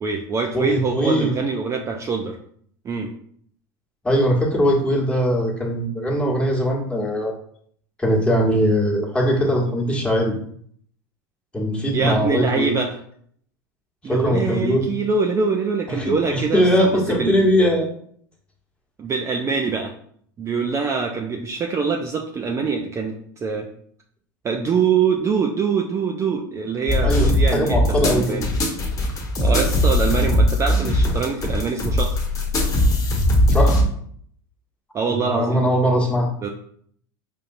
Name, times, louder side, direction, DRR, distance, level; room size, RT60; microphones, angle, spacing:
voice 1, 0.0-2.4 2.8-3.1 11.9-12.9 14.0-16.9 17.2-17.3 19.0-19.9 20.4-23.7 24.4-28.5 29.4-32.2 34.9-35.6 36.4-36.5, right 5 dB, 25° right, 2 dB, 0.5 m, -24 dB
voice 2, 0.5-1.3 4.0-7.3 8.0-10.3 11.5-12.7 14.0-14.9 15.9-17.9 27.0-28.4 33.5-33.8 35.1-36.3, equal, 10° left, -2 dB, 1.3 m, -20 dB
sound 1, 26.9-33.8, left 1 dB, 30° left, 1.1 m, -19 dB
5.1 x 2.8 x 2.6 m, 0.63 s
hypercardioid pair, 100°, 11 cm